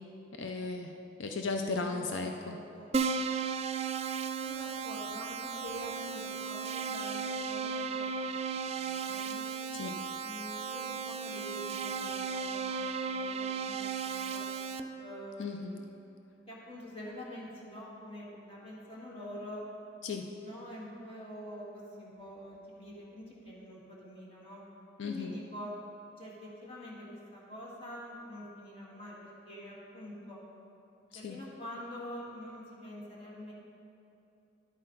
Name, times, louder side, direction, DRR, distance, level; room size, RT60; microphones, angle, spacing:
voice 1, 0.4-0.9 1.2-2.6 9.7-9.9 15.4-15.7 20.0-20.2 25.0-25.3 31.1-31.4, left 4 dB, 85° left, 4 dB, 0.5 m, -35 dB
voice 2, 1.8-2.9 4.4-9.7 10.2-14.5 15.0-16.0 16.5-19.7 20.4-24.6 25.0-25.8 26.2-30.4 31.1-33.5, equal, 30° left, -5 dB, 1.8 m, -46 dB
Keyboard (musical), 2.9-14.8, right 5 dB, 35° right, 0.3 m, -35 dB
11.0 x 8.7 x 3.9 m, 2.9 s
head